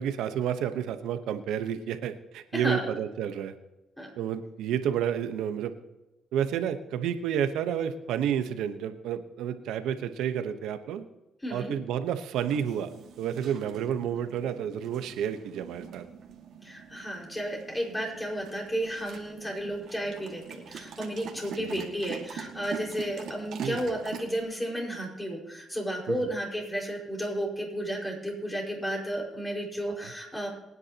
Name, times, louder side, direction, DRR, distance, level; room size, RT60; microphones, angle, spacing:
voice 1, 0.0-3.5 4.2-5.7 6.3-11.0 11.5-16.0 19.5-19.6 21.6-21.8 23.6-23.9 26.1-26.3 29.9-30.1, right 9 dB, 90° right, 10 dB, 1.0 m, -30 dB
voice 2, 2.5-2.8 4.0-4.1 11.4-11.7 16.6-30.5, equal, 15° left, -1 dB, 5.0 m, -33 dB
sound 1, 12.3-24.4, right 7 dB, 70° right, 1.9 m, -44 dB
23.5 x 9.9 x 2.9 m, 1.0 s
cardioid pair, 90°, 0 cm